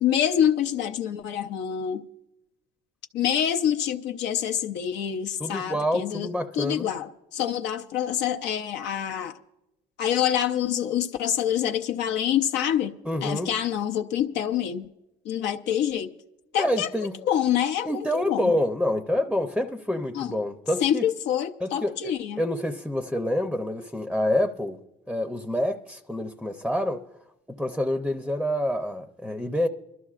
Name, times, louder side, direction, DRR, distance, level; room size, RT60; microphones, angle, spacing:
voice 1, 0.0-2.0 3.1-9.4 10.0-12.9 13.2-14.9 15.2-16.1 16.5-18.5 20.1-20.3 20.8-22.4, left 10 dB, 75° left, 0.6 m, -26 dB
voice 2, 5.4-6.9 13.1-13.5 16.6-17.2 17.8-21.0 21.6-21.9 22.4-24.8 25.1-27.0 27.5-29.7, left 1 dB, ahead, 0.6 m, -27 dB
26.5 x 12.5 x 2.4 m
cardioid pair, 105°, 18 cm